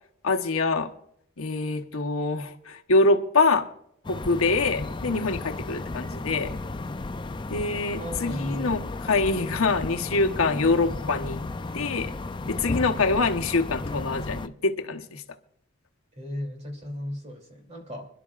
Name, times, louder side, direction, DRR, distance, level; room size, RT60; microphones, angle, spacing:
voice 1, 0.2-0.9 1.4-3.7 4.1-6.6 7.5-11.4 11.7-12.1 12.5-15.2, left 3 dB, 80° left, 5 dB, 1.1 m, -25 dB
sound 1, 4.0-14.5, left 2 dB, 20° left, 0.4 m, -34 dB
voice 2, 8.0-8.7 16.2-18.1, left 1 dB, 30° right, 3 dB, 2.9 m, -35 dB
26.5 x 11.0 x 2.5 m, 0.69 s
head